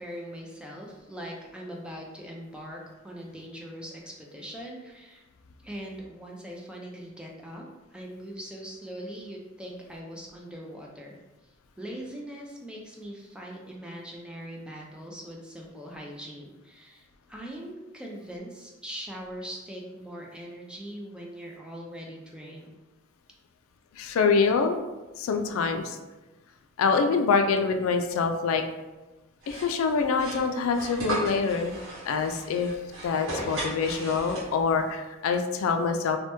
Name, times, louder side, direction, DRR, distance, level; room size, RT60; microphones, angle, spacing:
voice 1, 0.0-5.2 5.6-7.6 7.9-11.2 11.8-22.7, equal, 5° right, -2 dB, 0.4 m, -41 dB
voice 2, 24.0-24.8 25.2-26.0 26.8-28.6 29.5-31.8 32.1-32.7 33.0-36.2, left 5 dB, 85° left, 6 dB, 0.3 m, -25 dB
sound 1, 29.4-34.8, right 1 dB, 75° right, 1.1 m, -36 dB
3.2 x 2.1 x 2.9 m, 1.1 s
head